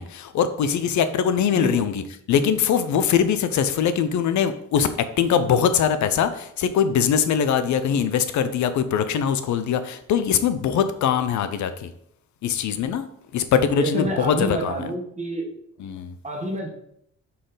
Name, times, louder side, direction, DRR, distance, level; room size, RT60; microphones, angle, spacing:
voice 1, 0.0-2.0 2.3-11.9 12.4-13.1 13.3-14.8 15.8-16.2, left 8 dB, 70° left, 11 dB, 0.6 m, -22 dB
voice 2, 1.5-1.9 13.8-15.5 16.2-16.7, right 1 dB, 25° right, 1 dB, 1.6 m, -28 dB
6.5 x 4.2 x 3.9 m, 0.70 s
cardioid pair, 90°, 30 cm